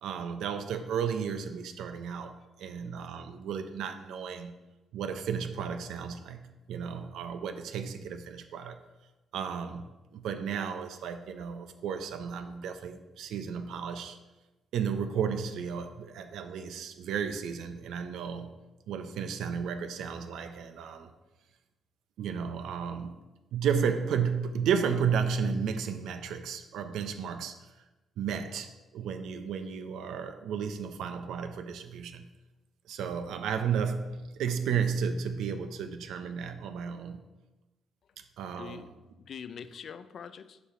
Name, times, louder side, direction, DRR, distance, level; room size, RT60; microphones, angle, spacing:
voice 1, 0.0-4.5 4.9-8.8 9.3-9.9 10.1-14.2 14.7-18.5 18.9-21.1 22.2-23.1 23.5-27.6 28.2-32.3 32.9-37.2 38.4-38.9, right 7 dB, 80° right, 8 dB, 0.6 m, -33 dB
voice 2, 38.6-40.6, left 7 dB, 55° left, 12 dB, 0.4 m, -44 dB
6.9 x 5.2 x 4.3 m, 1.1 s
cardioid pair, 90°, 0 cm